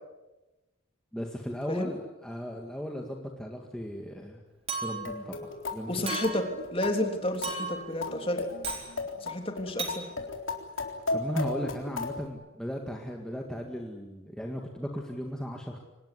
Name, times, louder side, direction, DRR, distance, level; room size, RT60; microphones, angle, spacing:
voice 1, 1.1-4.4 4.8-6.0 11.1-15.8, equal, 5° left, 1 dB, 1.9 m, -36 dB
Chink clink, 4.7-5.2 6.1-6.5 7.4-7.9 8.6-8.9 9.8-10.0, right 4 dB, 30° right, 4.0 m, -35 dB
sound 1, 4.8-12.3, left 3 dB, 70° left, 3.8 m, -36 dB
voice 2, 5.9-6.5 6.7-8.5 9.2-10.0, left 1 dB, 25° left, 5 dB, 3.3 m, -31 dB
25.0 x 19.5 x 9.8 m, 1.1 s
head